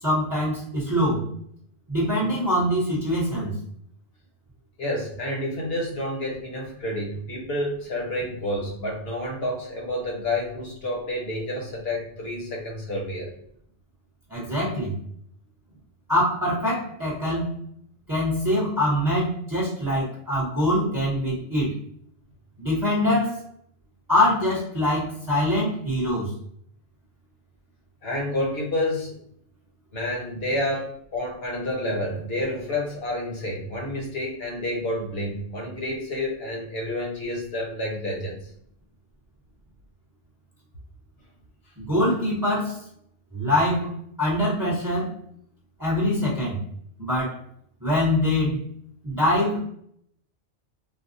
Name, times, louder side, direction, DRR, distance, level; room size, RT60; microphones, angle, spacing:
voice 1, 0.0-1.2 1.9-3.6 14.3-14.9 16.1-17.5 18.1-21.8 22.6-23.4 24.1-26.3 41.8-42.8 43.3-43.9 44.2-45.1 45.8-46.6 47.0-47.4 47.8-48.6 49.0-49.6, left 1 dB, 20° right, -6 dB, 0.9 m, -24 dB
voice 2, 4.8-13.3 28.0-29.2 29.9-38.3, left 1 dB, 60° left, -1 dB, 1.3 m, -29 dB
4.1 x 2.2 x 2.6 m, 0.67 s
omnidirectional pair, 1.2 m